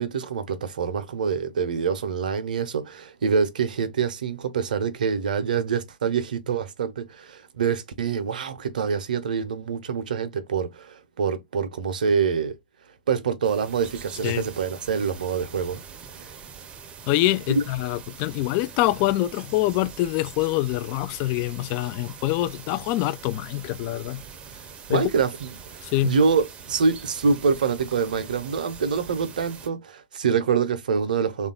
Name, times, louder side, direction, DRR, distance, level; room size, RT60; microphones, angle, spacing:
voice 1, 0.0-12.6 13.1-15.8 16.2-16.3 17.5-17.6 24.9-25.5 26.0-31.5, right 6 dB, 65° right, 0.7 m, -25 dB
sound 1, 13.4-29.7, right 6 dB, 25° right, 0.6 m, -43 dB
voice 2, 17.1-24.2 24.9-25.1 25.8-26.1, left 16 dB, 35° left, 0.3 m, -25 dB
3.4 x 2.4 x 3.7 m
figure-of-eight pair, 105°, 5 cm